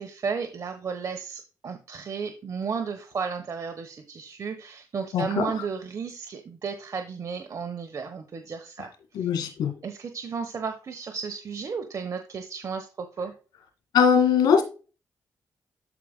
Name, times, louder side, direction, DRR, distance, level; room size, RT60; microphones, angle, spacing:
voice 1, 0.0-9.3 9.8-13.3, right 5 dB, 55° right, 7 dB, 1.1 m, -33 dB
voice 2, 9.2-9.7 13.9-14.6, left 7 dB, 90° left, 5 dB, 2.1 m, -20 dB
13.0 x 4.9 x 2.2 m, 0.34 s
cardioid pair, 60°, 7 cm